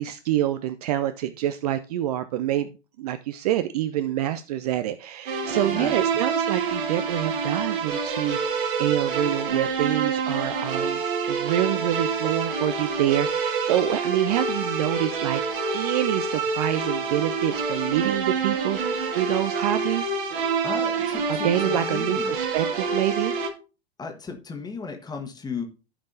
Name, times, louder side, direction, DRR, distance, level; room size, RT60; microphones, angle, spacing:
voice 1, 0.0-15.4 15.7-20.1 21.3-23.4, right 13 dB, 40° right, 11 dB, 0.5 m, -26 dB
sound 1, 5.3-23.5, right 5 dB, 55° right, 2.0 m, -27 dB
voice 2, 5.5-5.9 20.6-22.3 24.0-25.6, left 4 dB, 10° left, 5 dB, 1.4 m, -35 dB
14.0 x 5.2 x 2.7 m, 0.32 s
figure-of-eight pair, 95°, 33 cm